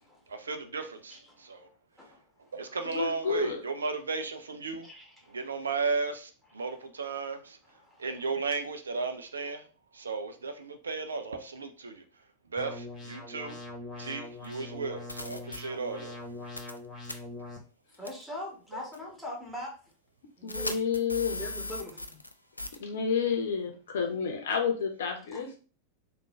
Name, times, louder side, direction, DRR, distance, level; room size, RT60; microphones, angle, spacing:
voice 1, 0.3-1.7 2.5-4.9 5.3-7.6 8.0-9.6 9.9-12.0 12.5-13.6 14.0-16.2, right 4 dB, 70° right, 0.4 m, -35 dB
voice 2, 2.8-3.6 20.4-21.4 22.8-25.6, left 6 dB, 60° left, 0.7 m, -30 dB
voice 3, 4.8-5.6 6.6-6.7 7.7-8.3 18.0-19.7 20.4-20.7 21.4-22.2 25.3-25.4, left 1 dB, ahead, 1.4 m, -42 dB
sound 1, 12.6-17.6, left 2 dB, 20° left, 1.2 m, -42 dB
sound 2, 14.4-14.5 15.1-15.6 16.6-16.8 17.1-17.2 18.1-18.2 18.9-19.0 20.5-22.3 22.6-22.8, left 2 dB, 85° left, 0.3 m, -37 dB
3.6 x 2.3 x 3.1 m
figure-of-eight pair, 90°, 0 cm